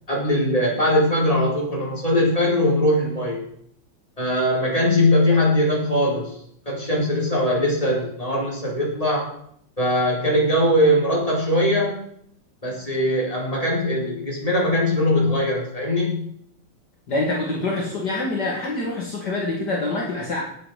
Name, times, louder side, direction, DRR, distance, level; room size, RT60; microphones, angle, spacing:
voice 1, 0.1-3.4 4.2-6.4 6.6-9.3 9.8-12.0 12.6-16.2, left 1 dB, 15° left, -4 dB, 4.7 m, -21 dB
voice 2, 17.1-20.4, left 2 dB, 55° left, -2 dB, 2.5 m, -25 dB
18.0 x 7.9 x 5.1 m, 0.68 s
omnidirectional pair, 2.2 m